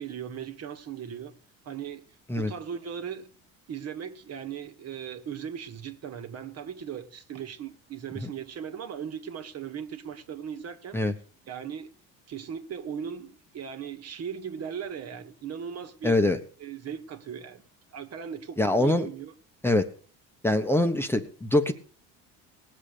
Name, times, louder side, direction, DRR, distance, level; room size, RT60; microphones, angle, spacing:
voice 1, 0.0-1.3 1.6-2.0 2.3-3.3 3.7-11.0 11.4-11.9 12.3-16.2 16.6-17.6 17.9-19.3, right 8 dB, 45° right, 1.7 m, -38 dB
voice 2, 16.0-16.4 18.6-19.1 19.6-19.9 20.4-21.7, left 1 dB, 5° left, 1.1 m, -23 dB
19.0 x 7.4 x 6.7 m
cardioid pair, 110°, 35 cm